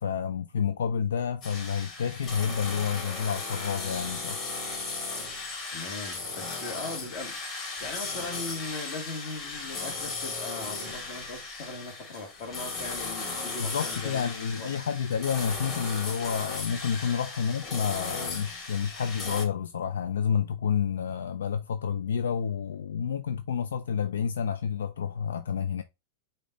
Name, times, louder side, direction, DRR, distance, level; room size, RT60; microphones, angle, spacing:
voice 1, 0.0-4.4 13.6-25.8, left 7 dB, 85° left, 0.4 m, -29 dB
sound 1, 1.4-19.4, left 3 dB, 35° left, 2.7 m, -36 dB
voice 2, 5.7-7.4 7.8-14.7 17.1-17.2 18.2-18.3 18.7-18.8, left 3 dB, 55° left, 1.9 m, -39 dB
5.1 x 2.7 x 3.9 m
hypercardioid pair, 120°, 0 cm